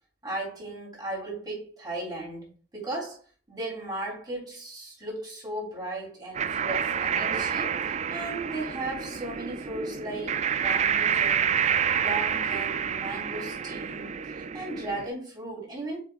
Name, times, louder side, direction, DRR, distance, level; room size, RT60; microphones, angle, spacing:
voice 1, 0.2-3.2 3.5-7.7 8.1-11.6 12.0-16.0, right 2 dB, 25° right, 3.6 m, -36 dB
sound 1, 6.3-15.1, right 7 dB, 40° right, 0.4 m, -28 dB
7.4 x 5.5 x 2.5 m
head